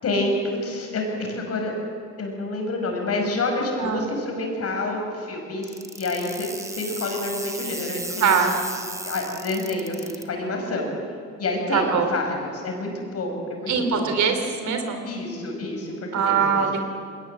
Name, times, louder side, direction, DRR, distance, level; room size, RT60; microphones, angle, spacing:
voice 1, 0.0-1.7 2.2-8.7 9.0-10.9 11.4-14.1 15.0-16.7, left 2 dB, 55° left, 2 dB, 5.7 m, -28 dB
sound 1, 5.6-10.2, right 2 dB, 10° right, 1.3 m, -35 dB
voice 2, 8.2-8.5 11.7-12.1 13.7-15.0 16.1-16.9, right 6 dB, 70° right, 6 dB, 3.2 m, -22 dB
20.5 x 18.5 x 7.9 m, 2.2 s
cardioid pair, 90°, 30 cm